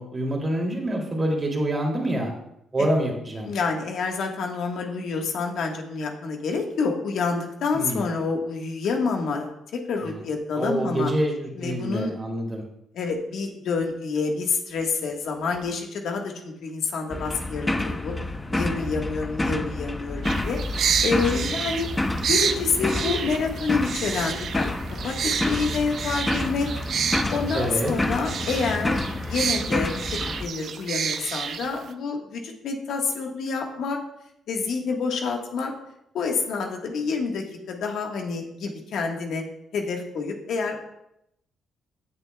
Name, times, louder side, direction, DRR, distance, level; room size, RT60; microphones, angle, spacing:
voice 1, 0.0-2.3 2.7-3.5 7.7-8.0 10.5-12.6 27.5-27.9, right 1 dB, 25° right, 0 dB, 2.7 m, -26 dB
voice 2, 3.4-11.1 11.6-12.1 12.9-16.3 16.6-18.1 18.5-20.6 21.0-21.9 22.3-24.7 25.0-26.7 27.3-29.0 29.3-29.9 30.4-34.0 34.5-35.7 36.1-39.4 39.7-40.8, left 4 dB, 75° left, 2 dB, 1.4 m, -28 dB
sound 1, 17.1-30.5, left 2 dB, 15° left, 0.7 m, -29 dB
sound 2, 20.2-31.9, right 7 dB, 60° right, 0.6 m, -29 dB
16.5 x 6.7 x 2.3 m, 0.79 s
cardioid pair, 90°, 0 cm